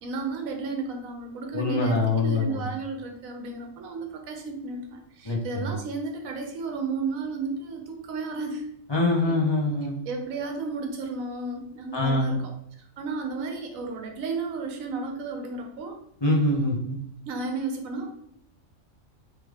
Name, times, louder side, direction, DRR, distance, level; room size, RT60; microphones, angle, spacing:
voice 1, 0.0-8.7 9.2-9.5 10.1-12.4 12.8-16.0 17.3-18.1, right 3 dB, 80° right, 3 dB, 1.1 m, -33 dB
voice 2, 1.5-2.6 5.2-5.7 8.9-10.0 11.9-12.4 16.2-17.0, left 2 dB, 40° left, -5 dB, 0.3 m, -24 dB
3.2 x 3.2 x 2.3 m, 0.72 s
omnidirectional pair, 1.4 m